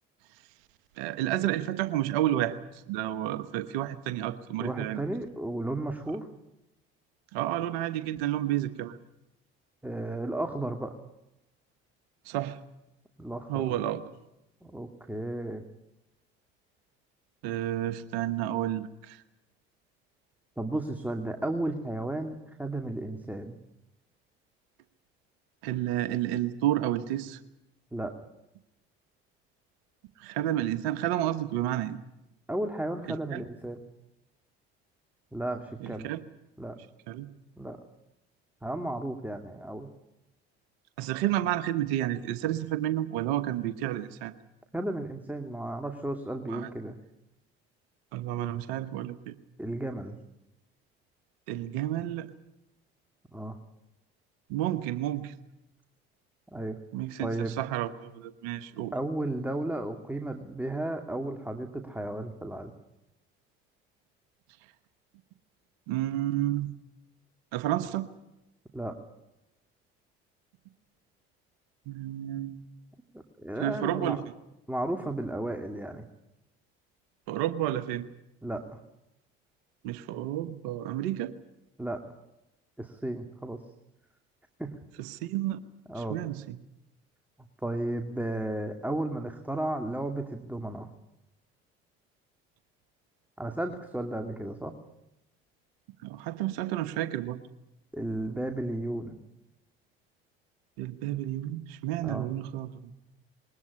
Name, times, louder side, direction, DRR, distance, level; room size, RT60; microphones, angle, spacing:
voice 1, 1.0-5.0 7.3-9.0 12.2-12.6 13.5-14.0 17.4-19.2 25.6-27.4 30.2-32.0 33.1-33.4 35.8-36.2 37.1-37.3 41.0-44.3 46.5-46.7 48.1-49.4 51.5-52.3 54.5-55.3 56.9-58.9 65.9-66.7 67.5-68.1 71.9-72.6 73.6-74.2 77.3-78.1 79.8-81.3 85.0-85.6 85.9-86.6 96.0-97.4 100.8-103.0, right 13 dB, 80° right, 12 dB, 1.2 m, -31 dB
voice 2, 4.6-6.3 9.8-11.0 13.2-13.8 14.6-15.6 20.6-23.6 27.9-28.1 32.5-33.8 35.3-36.1 36.6-36.8 37.6-37.8 38.6-39.9 44.7-47.0 49.6-50.1 53.3-53.6 56.5-56.8 57.2-57.6 58.9-62.7 68.7-69.0 73.1-74.2 74.7-76.1 78.4-78.8 81.8-82.0 82.8-83.6 84.6-84.7 85.9-86.2 87.6-90.9 93.4-94.8 97.9-99.2 102.0-102.3, right 1 dB, 5° right, 5 dB, 2.5 m, -34 dB
21.5 x 18.0 x 9.7 m, 0.90 s
hypercardioid pair, 55°, 30 cm